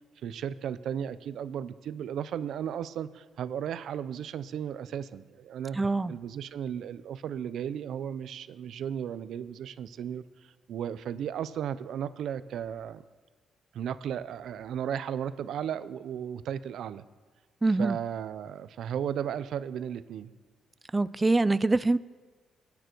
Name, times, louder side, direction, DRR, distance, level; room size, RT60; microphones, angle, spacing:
voice 1, 0.2-5.8 6.1-13.0 13.7-17.0 17.8-20.3, right 9 dB, 70° right, 14 dB, 0.7 m, -35 dB
voice 2, 5.8-6.1 17.6-18.0 20.9-22.0, right 2 dB, 20° right, 16 dB, 0.5 m, -24 dB
23.0 x 9.4 x 4.6 m, 1.4 s
cardioid pair, 90°, 0 cm